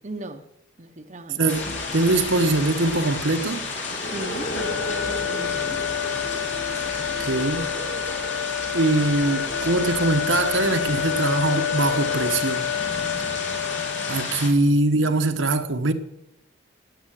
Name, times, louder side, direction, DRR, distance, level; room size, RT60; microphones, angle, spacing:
voice 1, 0.0-0.5 0.8-1.5 4.1-5.8 15.2-15.4, right 2 dB, 35° right, 1.0 m, -37 dB
voice 2, 1.4-3.6 7.2-7.7 8.7-12.7 14.1-15.9, right 2 dB, 75° right, 1.3 m, -22 dB
sound 1, 1.5-14.5, left 3 dB, 70° left, 3.3 m, -32 dB
sound 2, 1.5-12.3, left 1 dB, 50° left, 3.1 m, -37 dB
sound 3, 4.6-14.5, left 9 dB, 85° left, 0.6 m, -29 dB
18.0 x 8.7 x 7.6 m
head